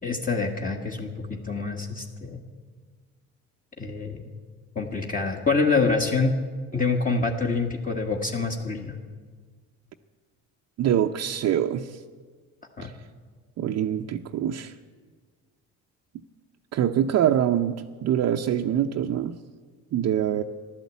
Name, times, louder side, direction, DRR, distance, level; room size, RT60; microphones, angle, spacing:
voice 1, 0.0-2.4 3.8-4.2 4.7-6.3 6.7-8.9 12.8-12.9, left 4 dB, 25° left, 0 dB, 1.7 m, -26 dB
voice 2, 10.8-12.0 12.8-12.9 13.6-14.7 16.7-19.3 19.9-20.4, right 10 dB, 55° right, 3 dB, 0.7 m, -24 dB
13.5 x 11.5 x 8.3 m, 1.5 s
cardioid pair, 90°, 31 cm